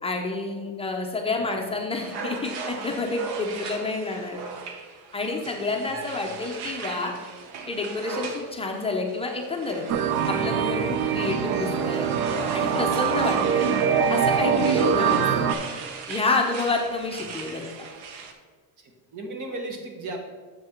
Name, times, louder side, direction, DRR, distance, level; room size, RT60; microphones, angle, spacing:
voice 1, 0.0-4.4 5.1-7.1 7.7-9.8 10.3-12.1 12.5-13.7 14.1-15.5 16.1-17.9, left 3 dB, 15° left, 1 dB, 0.6 m, -29 dB
sound 1, 2.0-18.3, right 4 dB, 90° right, 1.1 m, -38 dB
voice 2, 5.7-6.2 18.8-20.2, right 2 dB, 50° right, 3 dB, 1.4 m, -38 dB
sound 2, 9.9-15.5, right 7 dB, 70° right, 0.7 m, -23 dB
7.1 x 6.2 x 4.3 m, 1.5 s
cardioid pair, 170°, 38 cm